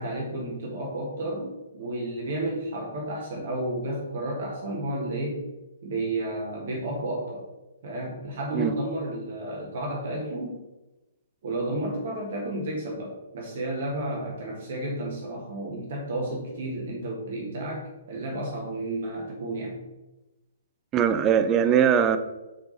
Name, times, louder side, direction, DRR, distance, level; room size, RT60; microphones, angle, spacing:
voice 1, 0.0-5.4 5.8-7.5 7.8-10.6 11.4-19.8, right 1 dB, 50° right, -2 dB, 1.5 m, -32 dB
voice 2, 20.9-22.2, right 8 dB, 25° right, 10 dB, 0.5 m, -21 dB
6.0 x 4.7 x 4.1 m, 1.0 s
figure-of-eight pair, 120°, 0 cm